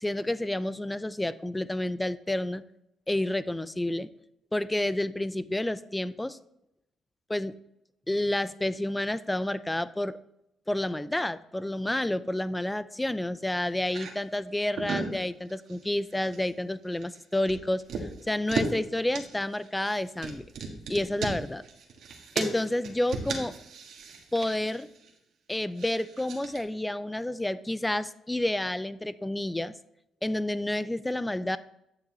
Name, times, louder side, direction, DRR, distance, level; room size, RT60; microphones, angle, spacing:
voice 1, 0.0-2.6 3.1-4.1 4.5-6.4 7.3-7.5 8.1-10.2 10.7-20.4 20.9-21.6 22.4-23.6 24.3-24.9 25.5-29.7 30.2-31.6, left 1 dB, 10° left, 15 dB, 0.4 m, -30 dB
sound 1, 13.8-14.1 14.6-15.2 15.4-15.8 16.1-16.5 16.8-18.8 19.1-25.1 25.8-26.6, right 5 dB, 70° right, 1.5 m, -36 dB
9.6 x 6.6 x 3.1 m, 0.82 s
cardioid pair, 90°, 0 cm